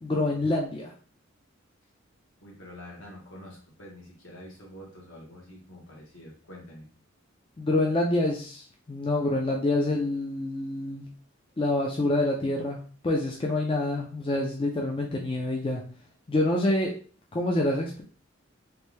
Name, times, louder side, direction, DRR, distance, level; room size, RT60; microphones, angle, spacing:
voice 1, 0.0-0.9 7.6-11.1 11.6-15.8 16.3-16.9 17.3-18.0, left 2 dB, 25° left, 0 dB, 0.4 m, -27 dB
voice 2, 2.4-6.9, left 1 dB, 70° left, -2 dB, 1.4 m, -46 dB
3.3 x 2.6 x 3.2 m, 0.41 s
head